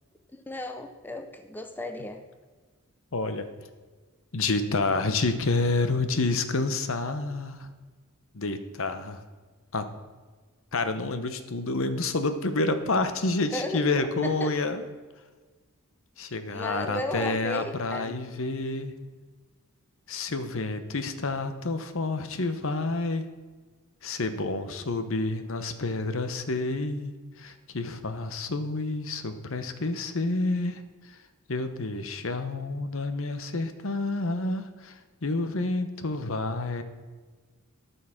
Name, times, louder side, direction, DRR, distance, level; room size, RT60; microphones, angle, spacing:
voice 1, 0.5-2.2 13.5-14.5 16.5-18.2, left 1 dB, 10° left, 6 dB, 0.6 m, -35 dB
voice 2, 3.1-3.4 4.3-7.7 8.3-9.2 9.7-9.8 10.7-14.8 16.2-18.9 20.1-23.2 24.0-30.8 31.5-36.8, left 3 dB, 65° left, 9 dB, 0.9 m, -29 dB
13.5 x 5.6 x 5.8 m, 1.4 s
head